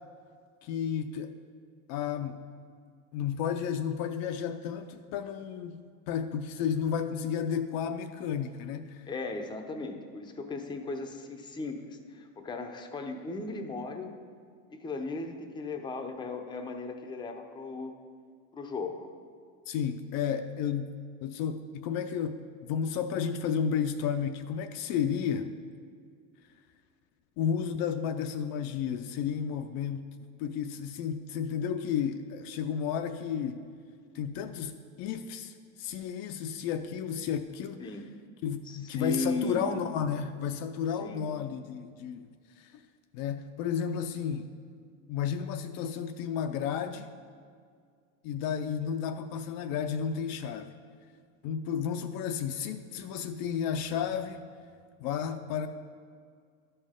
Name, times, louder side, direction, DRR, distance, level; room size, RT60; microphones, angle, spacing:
voice 1, 0.6-1.4 1.9-2.4 3.1-5.8 6.1-9.0 19.7-20.9 21.2-25.5 27.4-30.1 30.4-33.6 34.1-37.9 38.4-42.3 42.6-42.7 43.1-44.5 45.1-47.1 48.2-50.7 51.4-54.4 55.0-55.7, left 7 dB, 55° left, 8 dB, 0.5 m, -32 dB
voice 2, 9.1-14.1 14.7-17.9 18.5-19.1 37.8-38.1 38.6-39.8 41.0-41.3, left 3 dB, 10° left, 4 dB, 0.6 m, -36 dB
12.0 x 5.5 x 3.6 m, 2.1 s
supercardioid pair, 115°, 42 cm